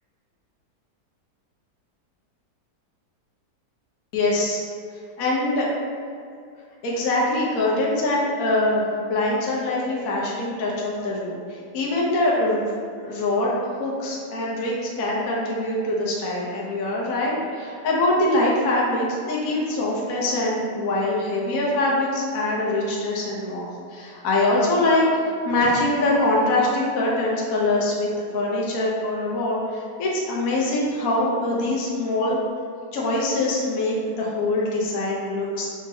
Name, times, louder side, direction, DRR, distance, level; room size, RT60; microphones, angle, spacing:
voice 1, 4.1-4.6 5.2-5.7 6.8-12.7 13.0-32.4 32.9-35.7, left 2 dB, 60° left, -4 dB, 1.2 m, -23 dB
5.0 x 3.9 x 2.7 m, 2.4 s
omnidirectional pair, 1.8 m